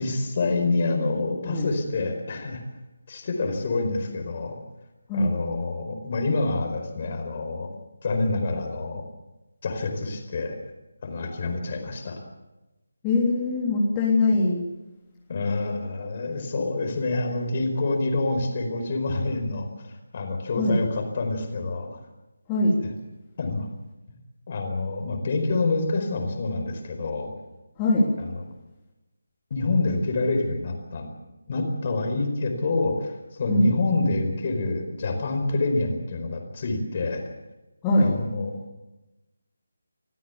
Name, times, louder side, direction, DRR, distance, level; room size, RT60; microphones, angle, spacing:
voice 1, 0.0-2.6 3.1-4.6 5.1-7.7 8.0-9.1 9.6-10.6 11.0-12.2 15.3-22.0 23.4-23.7 24.1-24.2 24.5-27.3 28.2-28.4 29.5-31.1 31.5-37.3 38.0-38.6, left 3 dB, 35° left, 5 dB, 4.7 m, -27 dB
voice 2, 13.0-14.6 20.6-20.8 22.5-22.8 27.8-28.0 33.5-33.7 37.8-38.1, left 2 dB, 15° left, -5 dB, 3.3 m, -22 dB
26.0 x 15.5 x 7.1 m, 1.0 s
figure-of-eight pair, 155°, 0 cm